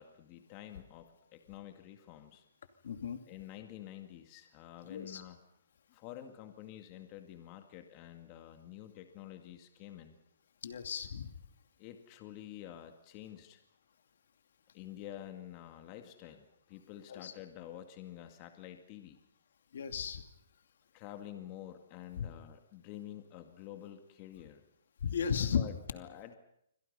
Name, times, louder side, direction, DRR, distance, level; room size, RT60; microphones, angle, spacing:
voice 1, 0.0-2.4 3.3-5.4 5.9-10.2 11.8-13.6 14.7-19.2 20.9-24.6 25.5-26.3, left 12 dB, 25° left, 6 dB, 2.1 m, -49 dB
voice 2, 2.8-3.2 4.9-5.2 10.6-11.3 17.1-17.3 19.7-20.2 22.2-22.3 25.0-25.6, left 7 dB, 65° left, 7 dB, 2.6 m, -34 dB
29.0 x 25.0 x 5.5 m, 0.74 s
hypercardioid pair, 165°, 0 cm